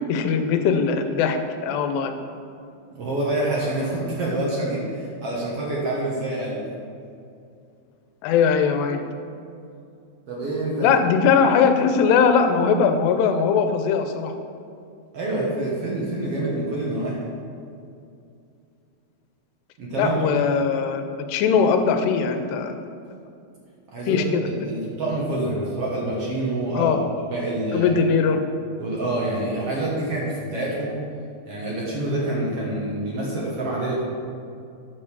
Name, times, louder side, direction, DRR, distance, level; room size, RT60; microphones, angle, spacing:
voice 1, 0.0-1.4 1.6-2.1 8.2-9.0 10.8-14.3 20.0-21.0 21.3-22.7 24.1-24.8 26.8-27.0 27.7-28.4, left 6 dB, 90° left, 7 dB, 2.8 m, -20 dB
voice 2, 2.9-6.6 10.3-10.9 15.1-17.2 19.8-20.3 23.9-26.9 27.3-27.9 28.8-30.9 31.5-34.1, right 1 dB, 60° right, -5 dB, 1.6 m, -26 dB
9.3 x 5.5 x 6.8 m, 2.5 s
omnidirectional pair, 4.7 m